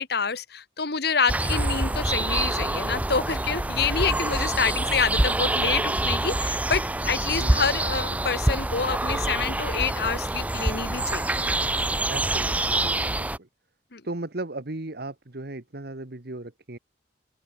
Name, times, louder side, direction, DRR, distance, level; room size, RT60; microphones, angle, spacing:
voice 1, 0.0-11.4 13.9-14.0, left 5 dB, 60° left, 1.7 m, -27 dB
sound 1, 1.3-13.4, right 1 dB, 10° right, 0.4 m, -26 dB
voice 2, 12.1-13.5 14.0-16.8, right 2 dB, 60° right, 1.5 m, -36 dB
open air
head